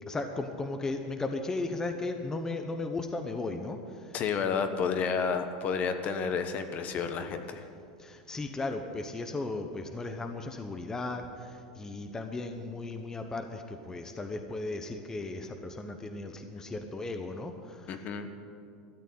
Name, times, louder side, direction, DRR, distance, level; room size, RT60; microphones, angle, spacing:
voice 1, 0.1-4.1 8.0-18.0, left 2 dB, 15° left, 5 dB, 0.9 m, -36 dB
voice 2, 4.1-7.6 17.9-18.3, left 6 dB, 40° left, 8 dB, 1.1 m, -30 dB
13.0 x 8.3 x 9.9 m, 2.4 s
supercardioid pair, 125°, 4 cm